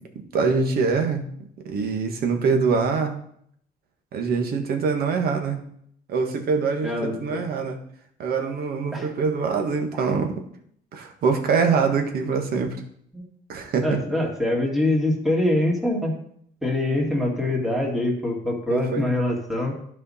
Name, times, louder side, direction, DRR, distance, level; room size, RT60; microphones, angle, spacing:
voice 1, 0.3-1.2 1.6-3.2 4.1-5.6 6.1-7.8 8.2-10.3 10.9-12.7 13.5-14.0 18.7-19.1, right 5 dB, 65° right, 4 dB, 1.5 m, -24 dB
voice 2, 6.8-7.4 8.9-9.1 9.9-10.1 13.1-13.2 13.8-16.1 16.6-19.7, left 1 dB, ahead, -1 dB, 2.2 m, -24 dB
12.0 x 5.0 x 4.3 m, 0.68 s
cardioid pair, 110°, 17 cm